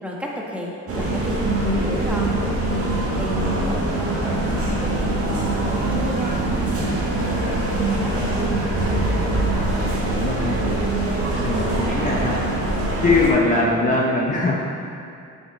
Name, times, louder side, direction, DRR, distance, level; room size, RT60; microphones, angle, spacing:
voice 1, 0.0-2.8 3.1-5.4 5.9-8.5 11.3-11.5 13.4-13.8, equal, 5° right, -4 dB, 1.5 m, -33 dB
sound 1, 0.9-13.3, right 2 dB, 50° right, 1.8 m, -23 dB
voice 2, 10.1-10.6 11.4-12.4 13.0-14.5, left 2 dB, 25° left, -4 dB, 1.0 m, -21 dB
7.8 x 7.0 x 4.2 m, 2.5 s
cardioid pair, 90°, 30 cm